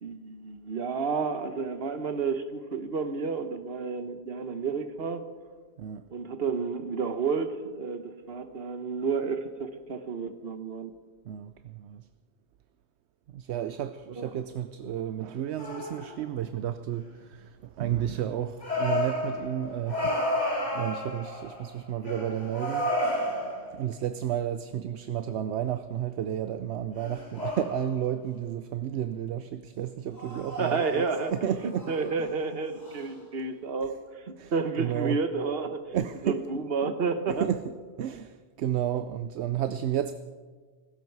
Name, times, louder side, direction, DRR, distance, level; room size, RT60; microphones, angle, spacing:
voice 1, 0.0-5.2 6.1-10.9 14.2-14.4 30.6-35.9 36.2-37.5, right 5 dB, 60° right, 9 dB, 1.3 m, -31 dB
voice 2, 11.3-12.1 13.3-20.4 20.7-22.9 23.7-31.9 32.2-32.3 34.4-34.5 34.8-35.2 35.9-36.4 37.4-37.6 38.0-40.1, right 10 dB, 75° right, 11 dB, 0.9 m, -32 dB
sound 1, 15.6-16.2 18.6-21.7 22.0-23.8 27.0-28.0 30.2-31.4 31.7-32.1 32.8-33.0, left 1 dB, 40° left, 4.0 m, -32 dB
18.5 x 16.0 x 4.7 m, 1.5 s
omnidirectional pair, 1.1 m